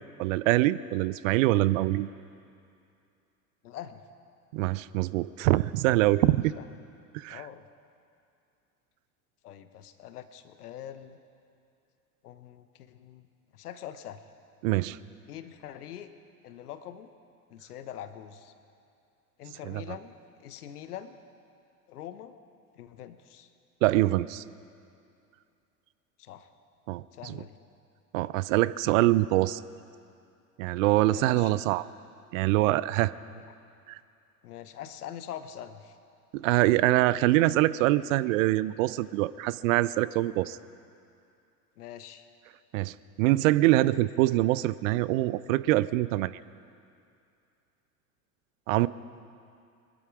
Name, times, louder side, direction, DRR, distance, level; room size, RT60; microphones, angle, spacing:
voice 1, 0.2-2.1 4.5-6.5 7.1-7.4 14.6-15.0 19.7-19.8 23.8-24.4 26.9-27.3 28.1-29.6 30.6-31.9 32.3-33.1 33.9-34.0 36.3-40.6 42.7-46.4 48.7-48.9, right 17 dB, 60° right, 18 dB, 0.5 m, -24 dB
voice 2, 3.6-4.0 6.5-6.6 7.3-7.6 9.4-11.2 12.2-13.3 13.5-14.2 15.3-16.1 16.4-17.1 17.5-18.5 19.4-21.2 21.9-22.4 22.8-23.5 26.2-26.5 27.1-27.6 31.0-31.6 33.3-33.4 34.4-36.0 41.8-42.3, left 10 dB, 75° left, 11 dB, 1.0 m, -43 dB
20.5 x 12.5 x 4.9 m, 2.5 s
hypercardioid pair, 80°, 46 cm